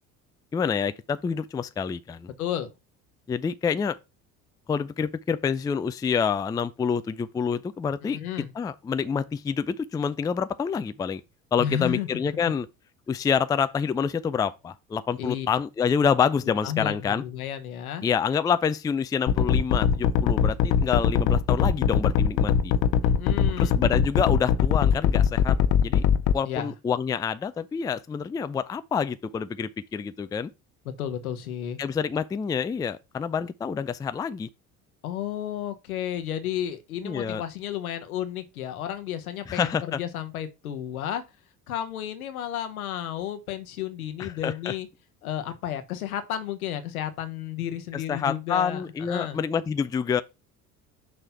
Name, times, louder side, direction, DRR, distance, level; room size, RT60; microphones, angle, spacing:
voice 1, 0.5-2.3 3.3-4.0 4.7-8.2 8.6-11.2 11.5-12.7 13.1-17.2 18.0-22.7 23.6-25.6 25.8-26.0 26.3-30.5 31.8-34.5 37.0-37.4 39.5-40.0 44.2-44.7 47.9-50.2, left 6 dB, 10° left, 0.3 m, -27 dB
voice 2, 2.4-2.7 8.0-8.5 11.6-12.1 12.5-12.6 15.2-15.5 16.4-18.0 23.0-23.8 26.5-26.7 30.8-31.8 35.0-41.2 41.7-44.9 45.2-49.4, left 10 dB, 80° left, 1.0 m, -32 dB
sound 1, 19.3-26.4, left 7 dB, 55° left, 0.7 m, -21 dB
6.2 x 3.3 x 5.5 m
figure-of-eight pair, 60°, 42 cm